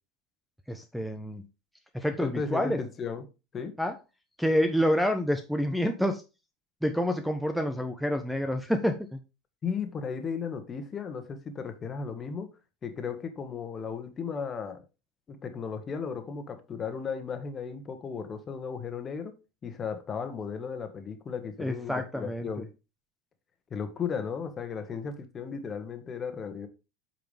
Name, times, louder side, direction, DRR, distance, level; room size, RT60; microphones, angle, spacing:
voice 1, 0.7-1.4 1.9-2.8 3.8-3.9 4.4-6.2 6.8-9.2 21.6-22.5, equal, ahead, 1.0 m, -28 dB
voice 2, 2.2-3.2 3.5-3.7 9.6-12.5 12.8-14.8 15.3-19.3 19.6-22.7 23.7-26.7, left 6 dB, 30° left, 1.7 m, -35 dB
8.6 x 5.9 x 3.5 m
hypercardioid pair, 80°, 0 cm